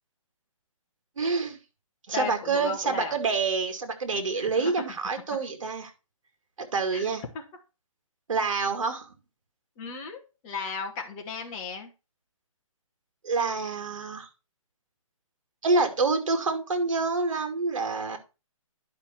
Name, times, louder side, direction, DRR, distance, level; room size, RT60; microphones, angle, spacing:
voice 1, 1.2-1.6 2.1-5.9 6.6-7.2 8.3-9.1 13.2-14.3 15.6-18.2, right 4 dB, 65° right, 7 dB, 2.5 m, -27 dB
voice 2, 2.1-3.1 4.4-4.7 6.9-7.0 7.3-7.4 9.8-11.9, left 5 dB, 15° left, 1 dB, 1.6 m, -35 dB
10.5 x 5.6 x 4.3 m, 0.29 s
hypercardioid pair, 170°, 18 cm